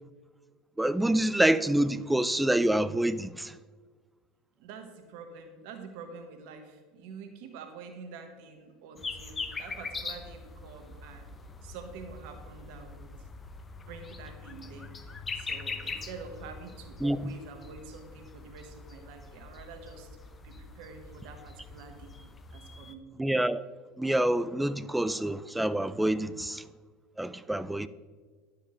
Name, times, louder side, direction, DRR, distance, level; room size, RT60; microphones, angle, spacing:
voice 1, 0.8-3.5 17.0-17.2 23.2-23.6 24.0-26.6 27.2-27.9, right 1 dB, 5° right, 0.5 m, -27 dB
voice 2, 4.6-11.3 11.6-13.1 13.9-20.1 20.4-22.1 22.5-23.0 27.5-27.6, right 5 dB, 60° right, 1.3 m, -47 dB
sound 1, 9.0-22.9, left 4 dB, 25° left, 0.8 m, -42 dB
11.5 x 7.5 x 3.8 m
hypercardioid pair, 80°, 0 cm